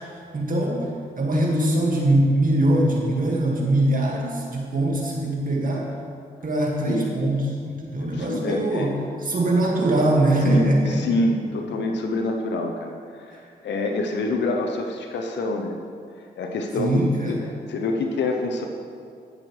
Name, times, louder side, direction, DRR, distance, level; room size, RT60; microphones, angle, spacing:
voice 1, 0.0-5.9 6.4-11.0 16.8-17.4, right 1 dB, 45° right, -2 dB, 2.0 m, -22 dB
voice 2, 8.0-9.0 10.4-15.8 16.4-17.4 17.7-18.7, left 2 dB, 70° left, 3 dB, 0.8 m, -26 dB
15.0 x 6.2 x 3.3 m, 2.3 s
supercardioid pair, 45°, 19 cm